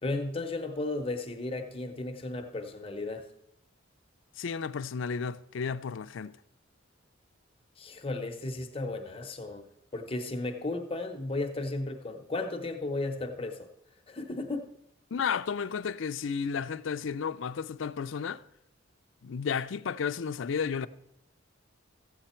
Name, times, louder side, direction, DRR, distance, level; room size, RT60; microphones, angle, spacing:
voice 1, 0.0-3.2 7.8-9.6 9.9-13.7 14.1-14.7, left 2 dB, 30° left, 0.9 m, -34 dB
voice 2, 4.4-6.3 15.1-18.4 19.2-20.9, left 6 dB, 75° left, 0.4 m, -32 dB
14.5 x 8.2 x 4.4 m
head